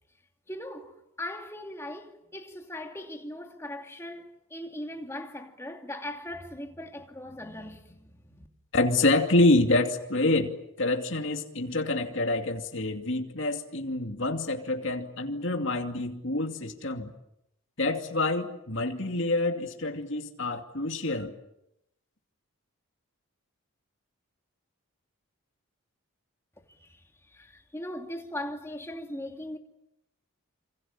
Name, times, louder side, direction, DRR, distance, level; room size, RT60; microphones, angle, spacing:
voice 1, 0.5-8.5 26.7-29.6, left 1 dB, 10° left, 2.6 m, -39 dB
voice 2, 8.7-10.5 10.8-17.1 17.8-21.3, left 2 dB, 60° left, 2.6 m, -27 dB
27.5 x 26.5 x 7.4 m
head